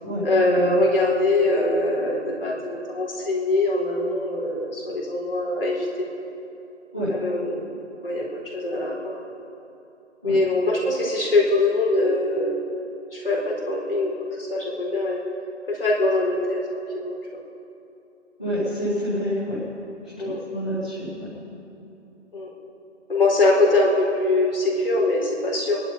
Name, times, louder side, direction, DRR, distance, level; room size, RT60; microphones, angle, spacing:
voice 1, 0.2-5.9 7.1-7.6 8.0-9.2 10.2-12.6 13.1-14.1 14.5-15.2 15.7-17.4 20.2-20.4 22.3-22.5 23.1-25.8, left 2 dB, 50° left, -2 dB, 4.1 m, -23 dB
voice 2, 18.4-19.6 20.2-21.3, equal, 5° left, -13 dB, 0.7 m, -27 dB
22.5 x 11.0 x 5.4 m, 2.8 s
figure-of-eight pair, 160°, 36 cm